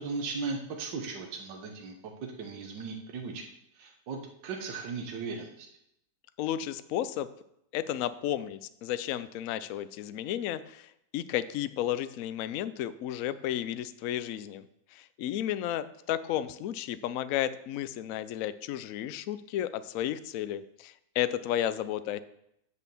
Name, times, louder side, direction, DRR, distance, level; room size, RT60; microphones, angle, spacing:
voice 1, 0.0-3.4 3.8-5.7, right 4 dB, 70° right, 2 dB, 1.7 m, -37 dB
voice 2, 6.4-7.3 7.7-14.6 14.9-22.2, left 11 dB, 80° left, 13 dB, 0.7 m, -33 dB
8.2 x 6.3 x 7.0 m, 0.79 s
omnidirectional pair, 2.1 m